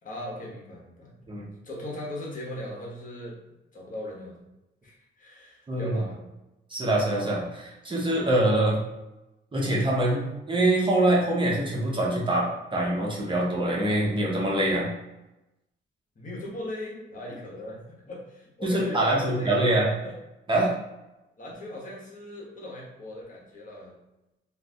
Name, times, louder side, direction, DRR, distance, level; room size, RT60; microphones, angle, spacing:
voice 1, 0.0-1.1 1.6-3.4 3.7-4.5 4.8-6.3 16.1-19.8 20.0-20.1 21.4-23.9, left 1 dB, 40° left, -3 dB, 1.1 m, -39 dB
voice 2, 5.7-6.0 6.7-8.8 9.5-14.9 18.6-19.9 20.5-20.7, right 1 dB, 25° right, -4 dB, 0.8 m, -24 dB
2.5 x 2.5 x 3.4 m, 0.97 s
cardioid pair, 90°, 20 cm